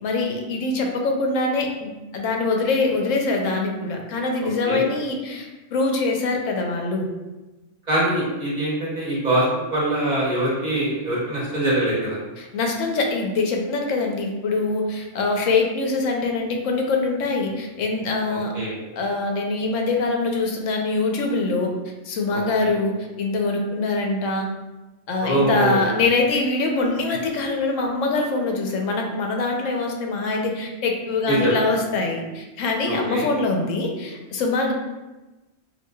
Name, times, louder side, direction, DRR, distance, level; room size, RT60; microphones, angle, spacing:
voice 1, 0.0-7.1 12.4-18.5 18.9-21.7 22.0-24.5 25.1-34.7, left 3 dB, 80° left, 1 dB, 1.0 m, -24 dB
voice 2, 4.4-4.8 7.9-9.4 9.7-12.2 18.3-18.7 22.3-22.7 25.2-25.9 31.3-31.6 32.9-33.3, right 1 dB, 35° right, -7 dB, 1.2 m, -23 dB
4.7 x 2.6 x 2.2 m, 1.1 s
omnidirectional pair, 1.3 m